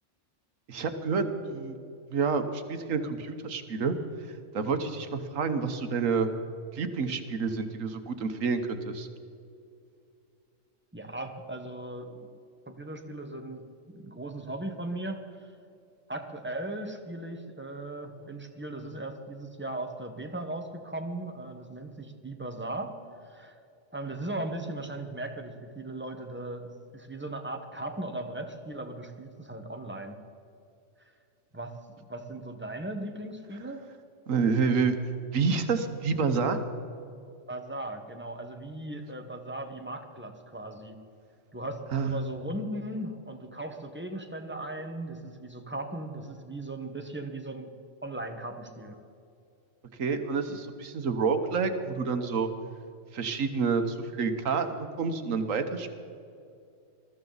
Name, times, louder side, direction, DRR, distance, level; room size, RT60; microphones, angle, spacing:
voice 1, 0.7-1.8 2.1-3.9 4.5-6.3 6.7-9.1 34.3-34.9 35.3-36.6 41.9-42.2 50.0-52.5 53.1-55.9, right 5 dB, 90° right, 8 dB, 1.5 m, -28 dB
voice 2, 10.9-12.2 12.7-13.7 13.9-15.5 16.1-23.6 23.9-30.2 31.5-31.8 32.1-33.8 37.5-41.0 41.5-47.7 48.0-49.0 50.5-50.6, right 1 dB, 10° right, 5 dB, 1.1 m, -38 dB
20.5 x 14.0 x 4.0 m, 2.5 s
omnidirectional pair, 1.3 m